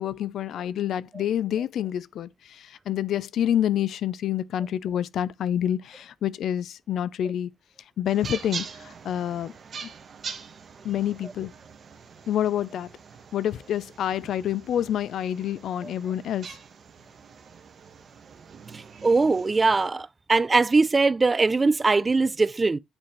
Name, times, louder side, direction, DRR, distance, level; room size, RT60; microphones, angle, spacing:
voice 1, 0.0-7.5 8.0-9.5 9.8-9.9 10.8-11.5 12.3-12.9 13.3-16.6, left 10 dB, 70° left, 0.5 m, -28 dB
sound 1, 8.1-19.9, right 6 dB, 50° right, 1.1 m, -43 dB
voice 2, 19.0-22.8, right 3 dB, 25° right, 0.3 m, -21 dB
8.8 x 4.3 x 3.1 m
cardioid pair, 115°, 0 cm